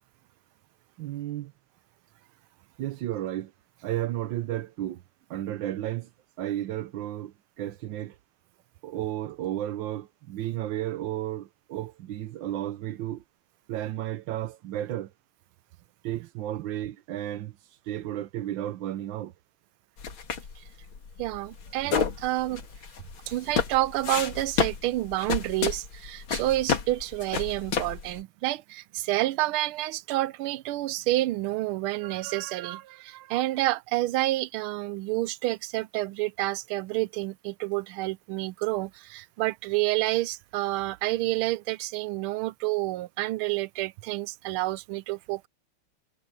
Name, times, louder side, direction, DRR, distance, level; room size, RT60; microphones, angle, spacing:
voice 1, 1.0-1.5 2.8-3.5 3.8-5.0 5.3-6.1 6.4-8.2 8.8-13.2 13.7-15.1 16.0-19.3 22.5-22.6, right 13 dB, 70° right, 1.4 m, -33 dB
sound 1, 20.0-28.2, left 6 dB, 70° left, 2.7 m, -31 dB
voice 2, 21.2-22.6 23.3-45.5, right 17 dB, 85° right, 1.5 m, -29 dB
omnidirectional pair, 2.3 m